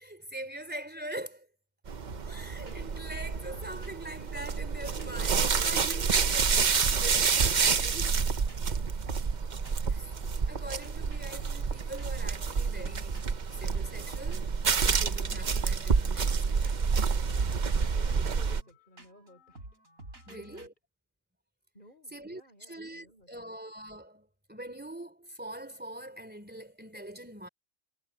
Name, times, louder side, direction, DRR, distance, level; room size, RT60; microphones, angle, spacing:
voice 1, 0.0-1.5 2.2-8.1 9.9-13.2 13.6-14.6 14.9-16.8 20.3-20.7 22.1-27.5, right 1 dB, 5° right, 3.2 m, -43 dB
sound 1, 1.9-18.6, right 5 dB, 40° right, 0.8 m, -28 dB
sound 2, 2.1-2.4 2.7-3.0 3.2-5.3 5.6-7.1 7.3-7.6 7.9-10.0 10.2-20.7, right 2 dB, 85° right, 6.4 m, -50 dB
voice 2, 17.9-19.8 20.3-20.7 21.7-23.5, left 1 dB, 35° left, 5.4 m, -56 dB
omnidirectional pair, 1.4 m